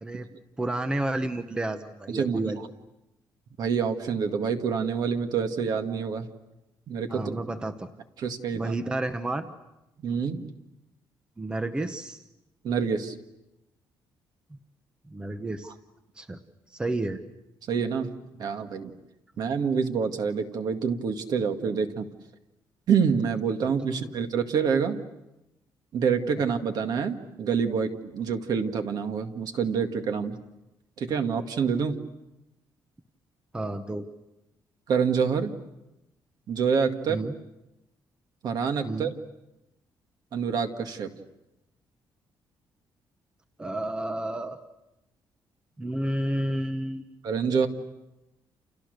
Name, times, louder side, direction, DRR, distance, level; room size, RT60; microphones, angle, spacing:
voice 1, 0.6-2.6 7.1-7.9 8.5-9.5 11.4-12.2 15.1-15.7 16.2-16.4 16.7-17.2 33.5-34.1 37.1-37.3 38.8-39.1 43.6-44.6 45.8-47.2, right 1 dB, 10° right, 8 dB, 0.9 m, -31 dB
voice 2, 2.1-2.6 3.6-6.3 6.9-7.4 8.2-8.8 10.0-10.5 12.6-13.2 17.7-18.1 18.4-18.9 19.4-22.1 22.9-25.0 25.9-30.4 31.0-32.0 34.9-35.5 36.5-37.2 38.4-39.1 40.3-41.1 47.2-47.7, right 6 dB, 55° right, 6 dB, 2.0 m, -27 dB
29.5 x 29.0 x 6.6 m, 0.94 s
cardioid pair, 180°, 8 cm